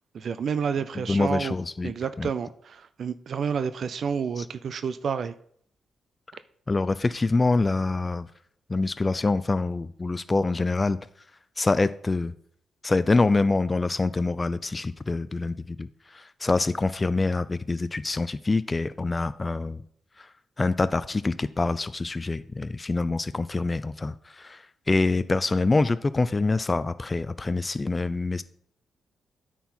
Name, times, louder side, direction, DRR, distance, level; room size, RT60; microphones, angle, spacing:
voice 1, 0.1-1.5 1.8-5.3, right 6 dB, 60° right, 0.4 m, -29 dB
voice 2, 1.0-1.9 2.2-2.3 4.4-4.5 6.7-8.3 8.7-11.0 11.6-12.3 12.8-19.8 20.2-20.3 20.6-28.4, left 3 dB, 30° left, 0.3 m, -25 dB
9.1 x 4.4 x 4.3 m
cardioid pair, 70°, 0 cm